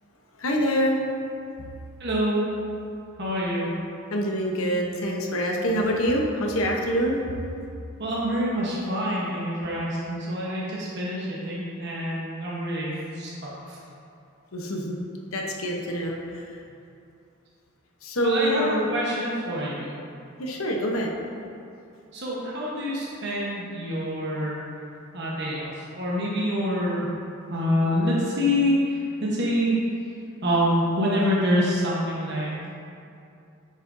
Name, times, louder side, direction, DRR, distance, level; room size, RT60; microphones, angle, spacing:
voice 1, 0.4-1.0 4.1-7.2 14.5-15.0 15.3-16.2 18.0-18.8 20.4-21.1, equal, 75° left, 0 dB, 0.9 m, -25 dB
voice 2, 2.0-2.5 3.2-3.7 8.0-13.8 18.2-20.0 22.1-24.7 25.1-27.2 27.5-29.8 30.4-32.5, equal, 55° right, -6 dB, 1.1 m, -26 dB
8.9 x 6.4 x 2.6 m, 2.6 s
head